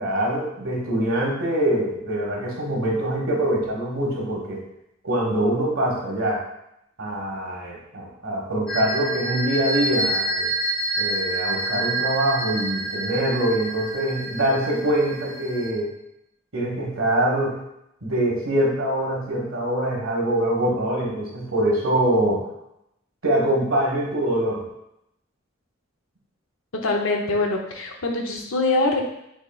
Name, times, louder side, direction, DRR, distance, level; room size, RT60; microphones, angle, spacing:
voice 1, 0.0-4.6 5.0-6.4 7.0-10.5 11.0-15.9 16.5-17.6 18.0-22.4 23.2-24.6, right 1 dB, 80° right, -3 dB, 1.4 m, -24 dB
sound 1, 8.7-15.7, right 2 dB, 5° left, 1.1 m, -28 dB
voice 2, 26.7-29.0, left 2 dB, 85° left, 1 dB, 0.8 m, -23 dB
6.2 x 3.2 x 2.3 m, 0.82 s
head